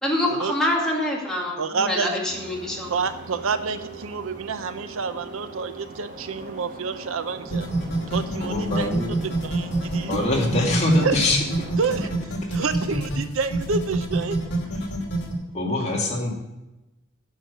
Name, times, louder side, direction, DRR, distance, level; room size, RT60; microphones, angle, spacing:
voice 1, 0.0-2.9, left 1 dB, 5° left, -4 dB, 2.3 m, -25 dB
voice 2, 1.6-2.2 2.9-7.7 8.1-8.9 9.4-10.2 11.0-11.2 11.8-12.1 12.5-14.4, right 5 dB, 65° right, 11 dB, 0.6 m, -28 dB
sound 1, 2.3-12.2, right 2 dB, 40° right, 1.4 m, -41 dB
sound 2, 7.5-15.3, right 2 dB, 50° left, 2.5 m, -27 dB
voice 3, 8.4-9.1 10.1-11.4 12.4-12.6 14.8-14.9 15.5-16.3, left 2 dB, 30° left, -1 dB, 2.1 m, -23 dB
10.0 x 6.4 x 7.7 m, 1.0 s
head